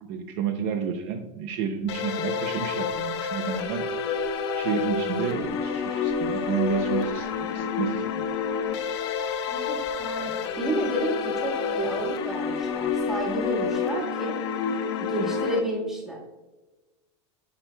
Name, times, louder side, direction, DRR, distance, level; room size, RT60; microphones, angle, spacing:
voice 1, 0.0-3.9 4.5-8.3 15.2-15.4, right 7 dB, 45° right, 6 dB, 0.6 m, -30 dB
sound 1, 1.9-15.6, left 5 dB, 70° left, 1.0 m, -29 dB
sound 2, 2.9-13.7, left 2 dB, 40° left, 1.4 m, -49 dB
voice 2, 9.5-14.4 15.0-16.2, right 1 dB, 5° right, -4 dB, 1.6 m, -31 dB
10.0 x 6.2 x 2.3 m, 1.2 s
supercardioid pair, 175°, 15 cm